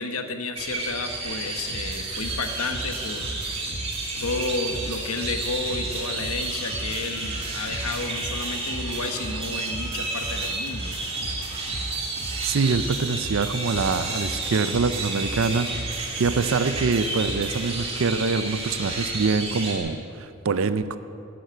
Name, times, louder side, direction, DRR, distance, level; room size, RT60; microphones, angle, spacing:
voice 1, 0.0-3.3 4.2-11.0, left 3 dB, 85° left, 6 dB, 1.2 m, -32 dB
sound 1, 0.5-19.8, right 2 dB, 25° right, 2.3 m, -31 dB
sound 2, 1.7-17.7, right 1 dB, 90° right, 1.7 m, -37 dB
voice 2, 12.4-21.0, right 4 dB, 65° right, 12 dB, 0.5 m, -25 dB
11.5 x 10.0 x 7.9 m, 2.5 s
head